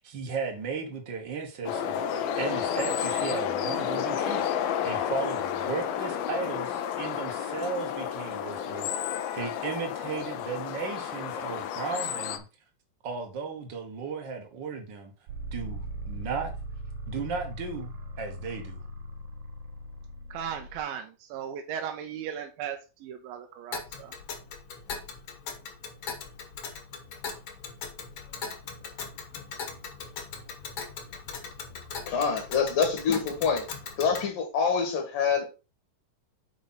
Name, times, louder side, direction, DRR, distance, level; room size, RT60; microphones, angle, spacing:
voice 1, 0.0-12.4 13.0-15.1 15.5-16.5 17.1-18.8, right 5 dB, 50° right, 1.5 m, -35 dB
sound 1, 1.7-12.4, left 9 dB, 90° left, 2.7 m, -31 dB
sound 2, 15.3-20.8, right 1 dB, 70° right, 1.8 m, -39 dB
voice 2, 20.3-24.2, right 8 dB, 90° right, 2.6 m, -37 dB
Tick, 23.7-34.3, left 5 dB, 55° left, 1.8 m, -40 dB
voice 3, 32.1-33.7 34.0-35.5, left 6 dB, 70° left, 3.0 m, -26 dB
8.1 x 4.9 x 4.1 m
omnidirectional pair, 4.0 m